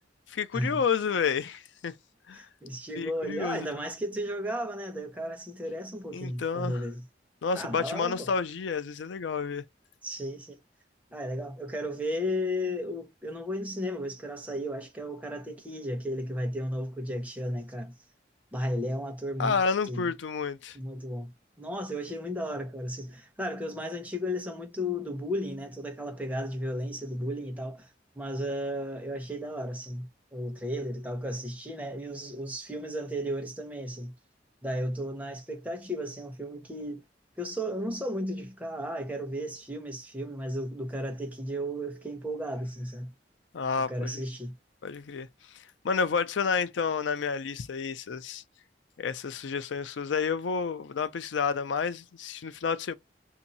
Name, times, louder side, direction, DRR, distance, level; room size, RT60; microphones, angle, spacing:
voice 1, 0.3-1.9 2.3-2.5 3.0-3.7 6.1-6.8 7.4-9.6 19.4-20.8 43.5-44.2 44.8-45.3 45.8-48.4 49.0-52.9, left 5 dB, 85° left, 0.5 m, -30 dB
voice 2, 2.3-7.0 7.5-8.3 10.0-10.6 11.1-17.9 18.5-19.6 19.9-20.0 20.7-21.3 21.6-27.9 28.2-34.1 34.6-37.0 37.4-43.1 43.8-44.5, equal, 10° right, 0.9 m, -34 dB
2.7 x 2.7 x 3.9 m
head